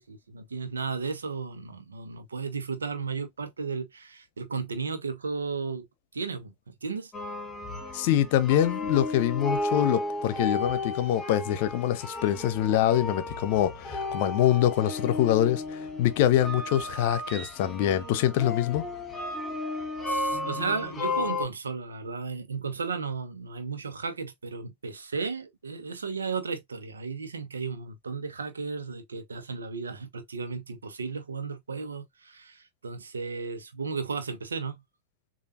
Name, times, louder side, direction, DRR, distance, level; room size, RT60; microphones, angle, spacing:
voice 1, 0.0-5.9 6.1-7.1 20.0-34.8, right 5 dB, 80° right, 1.0 m, -34 dB
sound 1, 7.1-21.5, left 2 dB, 15° left, 1.8 m, -33 dB
voice 2, 7.9-18.8, left 12 dB, 55° left, 0.8 m, -25 dB
6.8 x 2.6 x 2.7 m
figure-of-eight pair, 95°, 0 cm